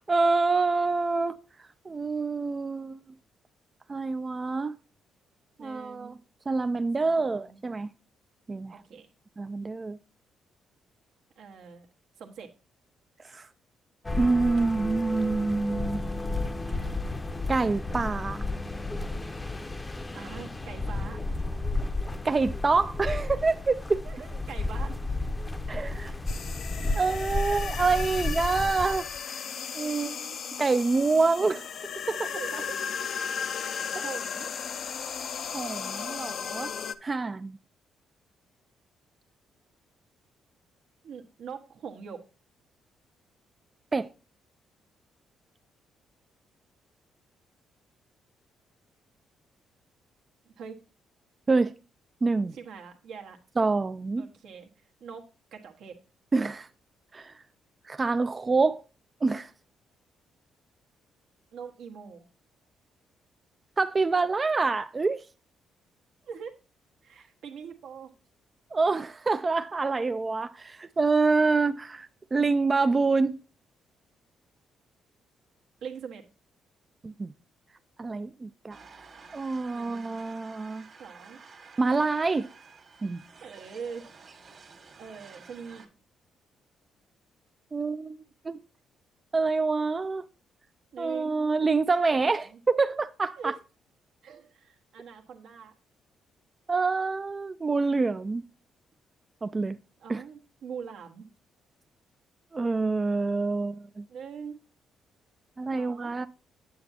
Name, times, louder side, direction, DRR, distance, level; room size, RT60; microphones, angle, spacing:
voice 1, 0.0-1.4 1.9-3.0 3.9-4.8 5.6-6.2 6.5-7.9 8.5-8.8 9.4-10.0 13.2-13.5 14.2-16.0 17.5-18.5 22.2-24.0 25.7-26.1 27.0-29.1 29.7-30.1 30.6-31.7 32.1-32.3 33.9-34.0 35.4-36.7 37.0-37.6 43.9-44.1 51.5-51.7 52.2-52.5 53.6-54.2 56.3-56.7 57.1-57.3 57.9-58.8 59.2-59.5 63.8-65.2 68.7-73.4 77.0-77.3 78.0-78.8 79.3-80.9 81.8-82.5 83.0-83.2 87.7-88.2 88.4-88.6 89.3-90.3 91.0-93.6 96.7-98.4 99.4-99.8 100.1-100.2 102.5-104.1 105.6-106.3, right 3 dB, 30° right, 0.3 m, -26 dB
voice 2, 5.6-6.1 7.0-7.6 8.7-9.1 11.4-11.9 12.2-12.5 20.1-21.2 24.0-25.0 29.8-30.4 31.2-31.5 32.3-32.8 34.0-34.5 41.0-42.2 50.4-50.7 52.5-53.4 54.2-54.7 55.0-55.2 55.5-56.0 61.5-62.3 66.2-66.5 67.0-68.1 75.8-76.2 79.7-80.1 81.0-81.4 83.4-84.1 85.0-85.8 90.9-91.4 92.1-92.6 93.4-93.6 94.2-95.7 100.0-101.2 104.1-104.6 105.7-106.1, right 6 dB, 75° right, 1.3 m, -43 dB
sound 1, 14.0-29.2, left 2 dB, 20° left, 0.6 m, -32 dB
sound 2, 26.3-36.9, left 7 dB, 60° left, 0.5 m, -35 dB
sound 3, 78.7-85.9, right 4 dB, 50° right, 1.6 m, -51 dB
8.6 x 7.0 x 2.7 m
cardioid pair, 90°, 0 cm